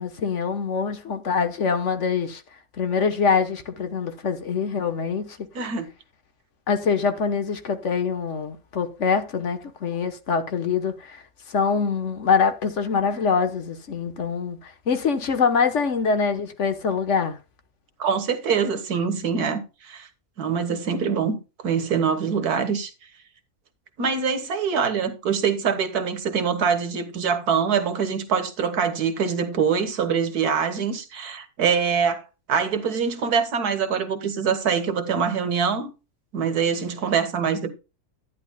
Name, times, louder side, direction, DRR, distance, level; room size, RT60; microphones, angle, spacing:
voice 1, 0.0-2.4 2.8-5.4 6.7-11.2 11.5-17.4, left 5 dB, 55° left, 1.4 m, -24 dB
voice 2, 5.5-5.9 18.0-20.1 20.4-21.4 21.6-22.9 24.0-32.2 32.5-35.9 36.3-37.7, right 6 dB, 85° right, 1.9 m, -24 dB
11.0 x 10.5 x 2.2 m
omnidirectional pair, 1.6 m